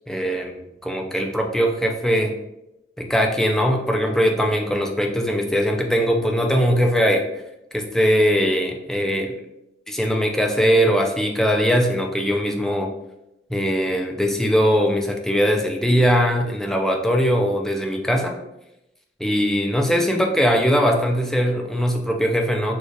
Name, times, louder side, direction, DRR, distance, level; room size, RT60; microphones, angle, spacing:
voice 1, 0.1-0.6 0.8-2.3 3.0-7.2 7.7-9.3 9.9-12.9 13.5-18.4 19.2-22.8, equal, 5° left, 2 dB, 0.4 m, -20 dB
6.3 x 2.4 x 3.3 m, 0.89 s
head